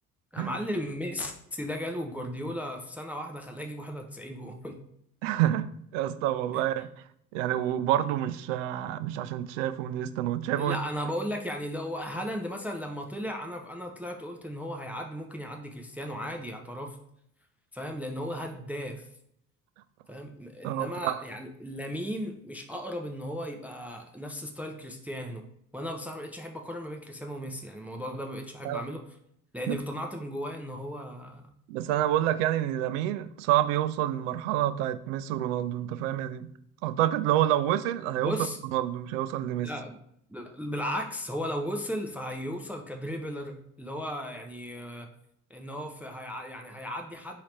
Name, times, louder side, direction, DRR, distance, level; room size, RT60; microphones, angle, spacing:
voice 1, 0.3-4.8 6.5-6.6 10.5-17.0 17.7-19.1 20.1-25.4 25.7-29.2 29.5-31.5 38.2-38.6 39.6-40.0 40.3-45.1 45.5-47.4, equal, 5° right, 3 dB, 0.5 m, -36 dB
voice 2, 5.2-5.7 5.9-6.9 7.3-10.8 20.6-21.2 28.6-28.8 31.7-36.5 36.8-38.3 38.7-39.7, right 12 dB, 65° right, 13 dB, 0.5 m, -28 dB
4.7 x 2.8 x 3.2 m, 0.72 s
figure-of-eight pair, 55°, 41 cm